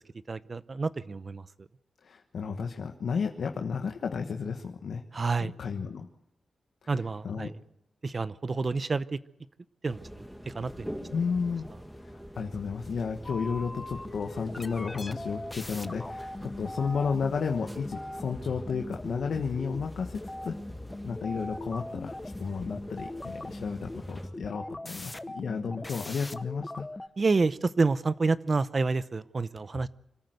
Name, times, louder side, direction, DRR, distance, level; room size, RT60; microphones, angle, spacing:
voice 1, 0.3-1.4 5.1-5.5 6.9-7.5 8.0-9.2 9.8-10.0 10.5-11.0 27.2-29.9, right 4 dB, 40° right, 16 dB, 0.7 m, -28 dB
voice 2, 2.0-5.0 5.4-6.1 6.8-7.5 11.1-11.7 12.0-20.6 21.0-22.1 22.4-26.8, left 5 dB, 75° left, 4 dB, 1.3 m, -33 dB
sound 1, 9.9-24.3, equal, 5° right, 2.1 m, -45 dB
sound 2, 13.2-27.1, left 1 dB, 20° left, 0.9 m, -40 dB
25.0 x 13.5 x 8.0 m, 0.83 s
cardioid pair, 80°, 0 cm